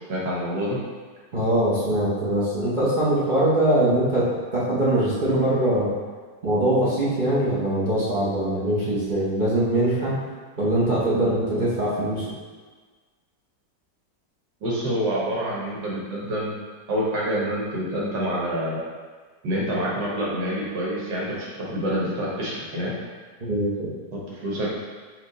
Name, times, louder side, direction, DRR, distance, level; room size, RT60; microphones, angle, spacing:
voice 1, 0.1-0.8 14.6-16.5 16.9-18.8 19.4-22.9 24.1-24.8, equal, 75° right, -5 dB, 1.7 m, -27 dB
voice 2, 1.3-4.2 4.5-5.9 6.4-10.1 10.6-12.3 23.5-23.9, right 1 dB, 45° right, -9 dB, 0.6 m, -22 dB
4.4 x 2.9 x 4.0 m, 1.4 s
omnidirectional pair, 1.9 m